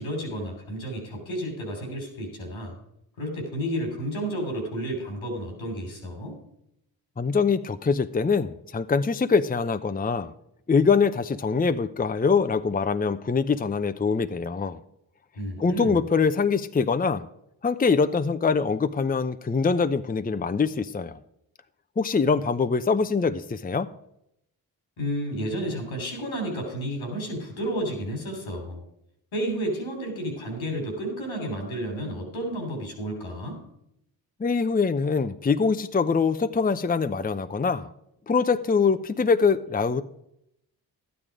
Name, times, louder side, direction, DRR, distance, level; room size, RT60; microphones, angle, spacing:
voice 1, 0.0-2.8 3.2-6.4 15.4-16.0 25.0-28.8 29.3-33.6, equal, 85° left, 3 dB, 3.6 m, -31 dB
voice 2, 7.2-10.3 10.7-14.8 15.6-17.3 17.6-21.1 22.0-23.9 34.4-37.9 38.3-40.0, left 5 dB, 20° left, 11 dB, 0.7 m, -23 dB
12.0 x 9.2 x 4.9 m, 0.78 s
supercardioid pair, 45°, 46 cm